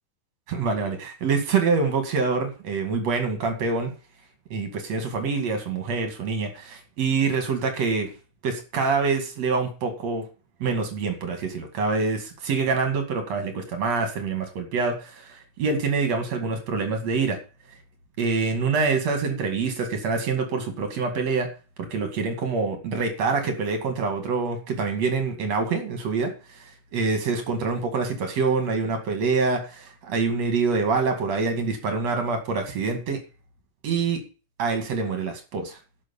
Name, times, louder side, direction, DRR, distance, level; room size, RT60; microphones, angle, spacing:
voice 1, 0.5-3.9 4.5-8.1 8.4-10.3 10.6-17.4 18.2-21.5 21.9-26.3 26.9-33.2 33.8-34.2 34.6-35.8, right 4 dB, 65° right, 5 dB, 3.3 m, -25 dB
11.0 x 6.5 x 7.1 m, 0.35 s
omnidirectional pair, 3.3 m